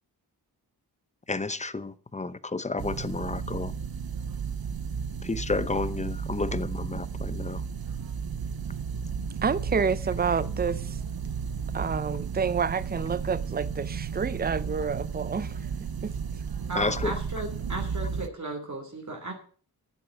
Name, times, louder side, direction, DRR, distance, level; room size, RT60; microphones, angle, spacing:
voice 1, 1.3-3.7 5.2-7.6 16.7-17.1, left 3 dB, 20° left, 0.8 m, -31 dB
sound 1, 2.8-18.3, right 6 dB, 65° right, 0.9 m, -33 dB
voice 2, 9.4-11.0 11.7-15.6 16.0-16.1, right 6 dB, 25° right, 0.6 m, -28 dB
voice 3, 16.7-19.3, right 2 dB, 45° right, 2.9 m, -35 dB
9.7 x 8.5 x 8.3 m
wide cardioid pair, 90°, 39 cm